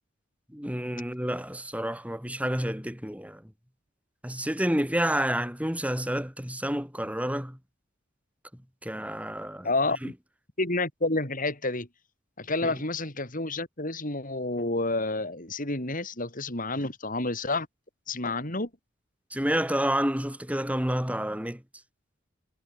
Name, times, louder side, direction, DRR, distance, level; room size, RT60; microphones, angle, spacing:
voice 1, 0.5-3.4 4.2-7.6 8.8-9.7 10.0-10.1 12.6-12.7 19.3-21.6, equal, 5° right, 7.7 m, -29 dB
voice 2, 9.6-10.1 10.6-11.9 12.4-17.7 18.1-18.7, left 2 dB, 40° left, 6.9 m, -29 dB
head